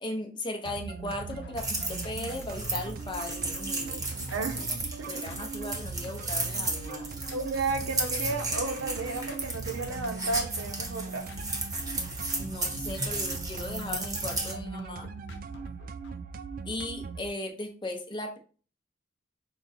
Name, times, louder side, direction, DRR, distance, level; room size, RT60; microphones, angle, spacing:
voice 1, 0.0-4.0 5.1-7.1 12.4-15.1 16.7-18.4, left 2 dB, 25° left, 3 dB, 0.8 m, -37 dB
sound 1, 0.6-17.3, right 4 dB, 45° right, 0.3 m, -40 dB
sound 2, 0.8-16.2, equal, 60° left, 0.5 m, -49 dB
sound 3, 1.6-14.5, right 2 dB, 20° right, 1.1 m, -34 dB
voice 2, 4.3-4.6 5.0-5.1 7.3-11.2, right 3 dB, 80° right, 6 dB, 0.8 m, -32 dB
5.1 x 2.4 x 4.2 m, 0.39 s
head